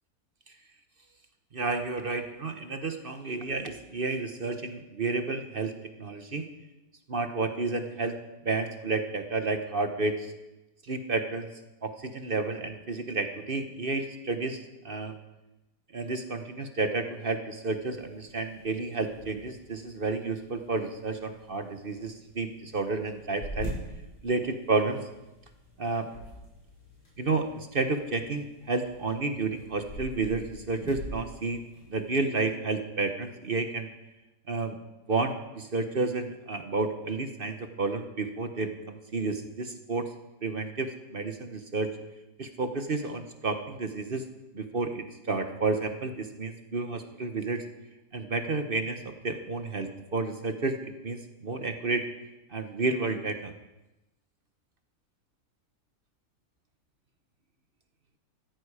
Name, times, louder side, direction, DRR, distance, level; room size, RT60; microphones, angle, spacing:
voice 1, 1.5-5.7 6.0-6.5 7.1-8.2 8.4-10.3 10.9-11.5 11.8-15.1 15.9-23.7 24.2-25.0 25.8-26.1 27.2-31.6 31.9-33.9 34.5-34.8 35.1-40.1 40.4-41.9 42.4-44.2 44.5-47.6 48.1-52.0 52.5-53.5, right 3 dB, 40° right, 7 dB, 1.0 m, -31 dB
sound 1, 17.6-32.4, equal, 75° left, 6.6 m, -45 dB
14.5 x 14.0 x 4.9 m, 0.99 s
omnidirectional pair, 1.7 m